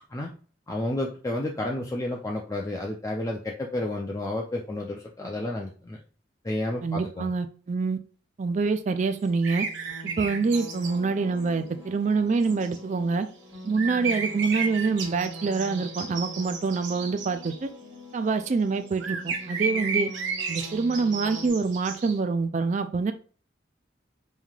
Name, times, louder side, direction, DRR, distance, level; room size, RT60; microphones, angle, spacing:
voice 1, 0.7-6.0 6.4-7.3, left 1 dB, 20° left, 0 dB, 0.5 m, -31 dB
voice 2, 6.8-8.0 8.4-9.7 10.2-13.3 13.6-17.7 18.1-20.1 20.5-23.1, right 4 dB, 40° right, 9 dB, 0.3 m, -26 dB
sound 1, 9.4-21.5, left 1 dB, 20° right, 1.3 m, -44 dB
sound 2, 9.4-10.9 11.4-11.5 12.4-12.8 13.7-17.6 18.9-22.2, right 5 dB, 80° right, 0.9 m, -33 dB
5.5 x 3.2 x 2.4 m, 0.40 s
head